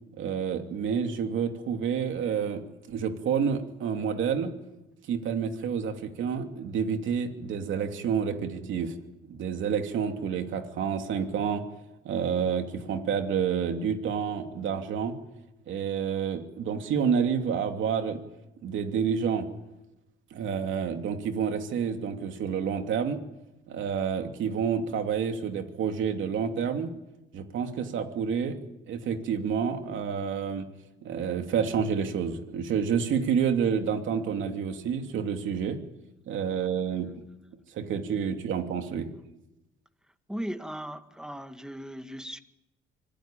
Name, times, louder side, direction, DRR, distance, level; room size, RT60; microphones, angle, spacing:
voice 1, 0.1-4.5 5.1-9.0 9.3-11.6 12.0-15.2 15.7-18.2 18.6-19.5 20.3-23.2 23.7-26.9 27.3-28.6 28.9-30.7 31.0-35.8 36.3-37.1 37.7-39.1, right 7 dB, 75° right, 2.9 m, -29 dB
voice 2, 40.3-42.4, equal, 5° right, 1.9 m, -37 dB
26.0 x 17.0 x 9.1 m
cardioid pair, 90°, 20 cm